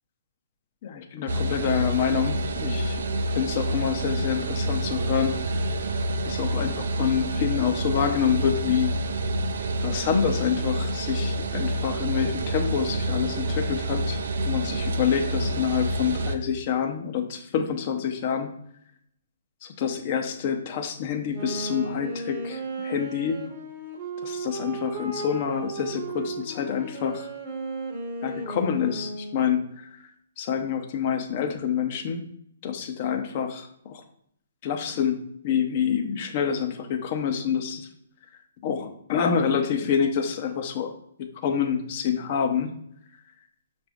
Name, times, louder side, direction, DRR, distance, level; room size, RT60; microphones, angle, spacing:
voice 1, 0.8-3.0 3.3-5.4 6.3-8.9 9.8-14.2 14.4-18.5 19.6-23.4 24.2-27.3 28.2-29.9 30.4-32.2 32.6-34.0 34.6-37.9 38.6-40.9 41.2-42.7, left 7 dB, 40° left, 5 dB, 0.7 m, -27 dB
sound 1, 1.3-16.4, right 1 dB, 70° right, 0.4 m, -28 dB
Wind instrument woodwind instrument, 21.3-29.6, right 2 dB, 35° right, 0.9 m, -35 dB
5.8 x 2.5 x 3.5 m, 0.71 s
hypercardioid pair, 140°, 0 cm